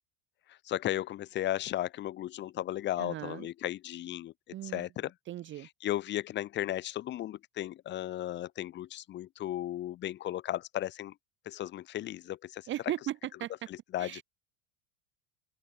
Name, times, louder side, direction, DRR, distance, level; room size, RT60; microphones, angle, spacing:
voice 1, 0.7-4.3 4.7-5.1 5.8-11.1 11.5-12.7 13.9-14.2, left 13 dB, 30° left, 0.7 m, -35 dB
voice 2, 3.0-3.5 4.5-4.9 5.3-5.7 12.7-13.7 14.0-14.2, right 13 dB, 35° right, 1.0 m, -37 dB
open air
supercardioid pair, 140°, 34 cm